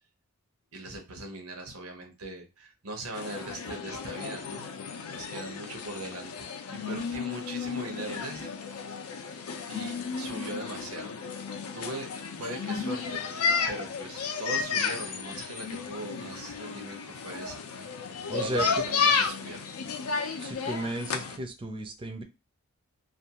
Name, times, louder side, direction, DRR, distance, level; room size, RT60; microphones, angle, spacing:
voice 1, 0.7-4.7 5.1-6.5 6.7-8.8 9.7-11.1 11.7-12.1 12.4-13.2 13.7-17.9 18.3-19.7, right 1 dB, 85° right, 2 dB, 0.8 m, -40 dB
sound 1, 3.1-21.4, left 5 dB, 90° left, 0.4 m, -33 dB
voice 2, 18.3-18.7 20.4-22.2, right 1 dB, 25° right, 5 dB, 0.3 m, -34 dB
2.5 x 2.2 x 2.8 m, 0.28 s
head